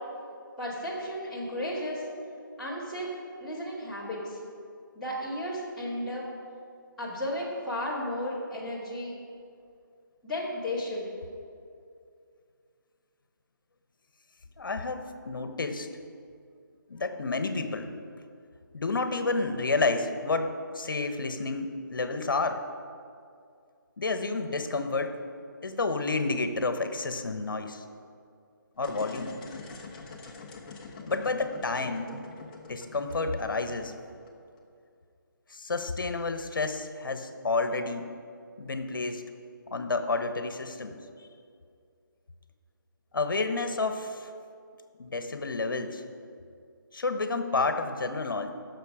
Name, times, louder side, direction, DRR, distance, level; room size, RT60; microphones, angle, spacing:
voice 1, 0.6-2.0 2.6-3.1 3.4-4.4 4.9-6.2 7.0-9.1 10.2-11.0, left 1 dB, ahead, -12 dB, 2.5 m, -34 dB
voice 2, 14.6-15.9 16.9-17.9 18.7-20.5 20.7-22.6 24.0-25.2 25.6-27.8 28.8-29.3 31.1-32.1 32.7-33.9 35.5-38.1 38.6-39.2 39.7-40.9 43.1-44.3 45.0-46.0 46.9-48.5, left 3 dB, 70° left, 8 dB, 1.2 m, -30 dB
sound 1, 28.7-34.6, left 4 dB, 20° left, 1.1 m, -45 dB
16.0 x 6.6 x 4.9 m, 2.4 s
figure-of-eight pair, 160°, 11 cm